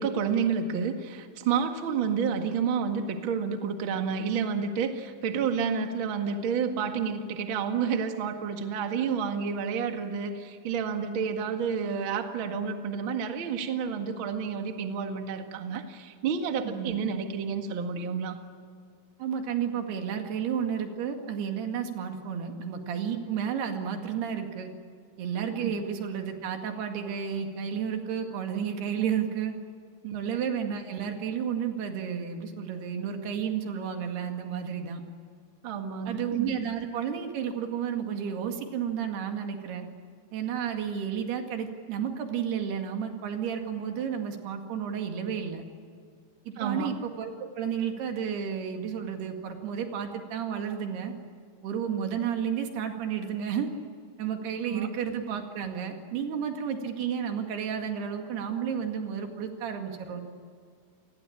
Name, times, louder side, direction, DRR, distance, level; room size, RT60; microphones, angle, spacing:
voice 1, 0.0-18.4 25.6-25.7 30.0-30.2 35.6-36.2 46.6-46.9 54.6-54.9, right 6 dB, 45° right, 5 dB, 2.0 m, -30 dB
voice 2, 19.2-24.7 25.2-29.5 30.1-35.0 36.1-39.9 40.3-45.6 46.5-51.1 51.6-53.7 54.2-60.2, right 8 dB, 90° right, 5 dB, 4.2 m, -32 dB
28.5 x 20.5 x 8.7 m, 2.1 s
omnidirectional pair, 4.5 m